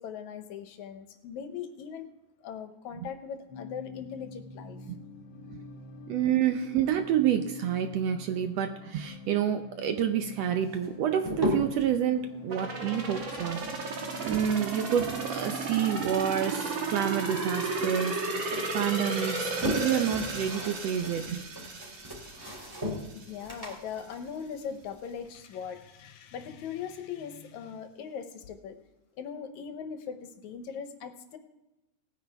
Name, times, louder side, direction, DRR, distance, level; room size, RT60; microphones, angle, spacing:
voice 1, 0.0-2.1 2.4-5.2 23.1-28.8 29.2-31.4, left 7 dB, 75° left, 8 dB, 2.2 m, -40 dB
sound 1, 3.5-20.5, left 3 dB, 55° left, 1.4 m, -47 dB
voice 2, 6.1-18.5 18.7-21.4, right 9 dB, 75° right, 7 dB, 1.6 m, -28 dB
sound 2, 10.6-11.9 13.0-15.4 15.7-17.5 17.8-18.7 19.2-25.3, left 1 dB, 5° right, 2.8 m, -37 dB
sound 3, 12.5-23.2 23.6-23.7, right 3 dB, 45° right, 2.0 m, -34 dB
18.5 x 9.6 x 3.4 m, 1.0 s
omnidirectional pair, 3.5 m